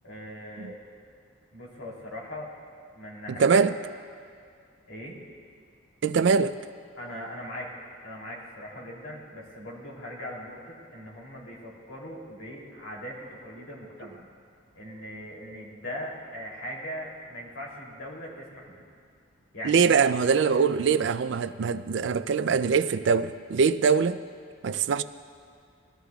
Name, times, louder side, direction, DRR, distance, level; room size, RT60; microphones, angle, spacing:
voice 1, 0.0-0.7 1.5-2.5 2.9-3.6 4.9-5.2 7.0-7.7 8.0-14.2 14.7-18.8 19.5-19.9, equal, 85° left, -4 dB, 3.0 m, -40 dB
voice 2, 3.3-3.7 6.0-6.6 19.6-24.2 24.6-25.0, right 5 dB, 60° right, 13 dB, 0.3 m, -23 dB
20.0 x 13.0 x 2.3 m, 2.2 s
head